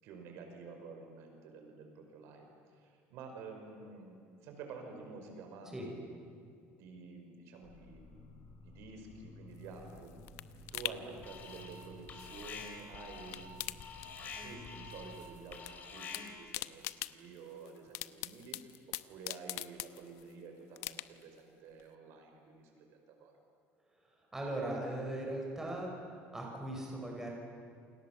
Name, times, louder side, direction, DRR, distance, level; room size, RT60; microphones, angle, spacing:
voice 1, 0.0-6.3 6.7-8.3 8.6-10.2 10.7-23.3, right 4 dB, 70° right, 3 dB, 5.6 m, -50 dB
sound 1, 7.6-16.8, left 2 dB, 55° left, 7.7 m, -56 dB
sound 2, 9.6-12.8 13.1-14.7 14.9-15.7 16.0-20.3 20.8-21.4 21.8-21.9, left 17 dB, 75° left, 0.9 m, -44 dB
Alarm, 11.2-11.8 12.1-16.5, left 5 dB, 35° left, 3.6 m, -47 dB
voice 2, 24.3-25.9 26.3-27.3, right 1 dB, 10° right, -1 dB, 5.8 m, -38 dB
28.5 x 27.0 x 7.5 m, 2.3 s
cardioid pair, 165°, 5 cm